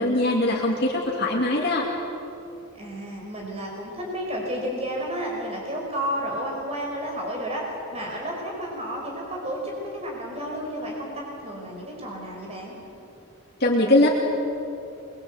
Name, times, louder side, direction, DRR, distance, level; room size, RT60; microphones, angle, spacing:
voice 1, 0.0-1.9 13.6-14.1, left 1 dB, 50° left, -2 dB, 2.6 m, -21 dB
voice 2, 2.7-7.6 7.9-12.8, equal, 30° right, -1 dB, 4.7 m, -31 dB
24.0 x 22.0 x 8.0 m, 2.7 s
head